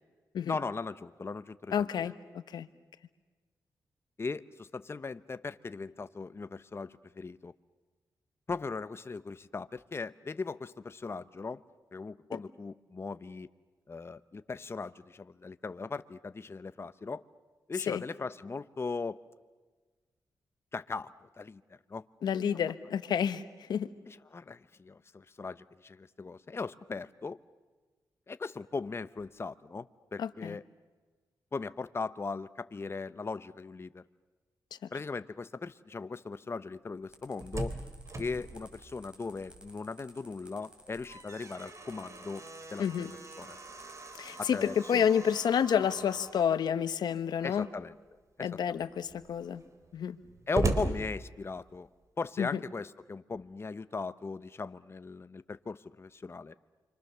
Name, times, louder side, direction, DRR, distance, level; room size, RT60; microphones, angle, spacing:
voice 1, 0.5-2.1 4.2-7.5 8.5-11.6 11.9-13.5 13.9-17.2 17.7-19.2 20.7-22.0 24.1-27.4 28.3-30.6 31.5-34.0 34.9-37.7 38.2-42.8 43.4-43.6 44.4-45.1 47.4-47.9 48.4-48.8 50.5-51.9 52.2-56.5, left 4 dB, 35° left, 12 dB, 0.8 m, -38 dB
voice 2, 1.7-2.1 2.5-2.7 17.9-18.0 22.2-23.4 23.7-23.9 30.2-30.6 42.8-43.1 44.2-47.7 48.4-49.6 49.9-50.2 52.4-52.6, left 8 dB, 80° left, 12 dB, 1.1 m, -29 dB
sound 1, 37.1-44.7, right 1 dB, 15° right, 7.3 m, -56 dB
Slam, 37.1-39.9 40.3-40.4 40.8-46.4 47.3-47.9 48.4-48.5 48.7-51.9, right 2 dB, 45° right, 3.7 m, -39 dB
29.0 x 25.5 x 6.9 m, 1.3 s
cardioid pair, 60°, 7 cm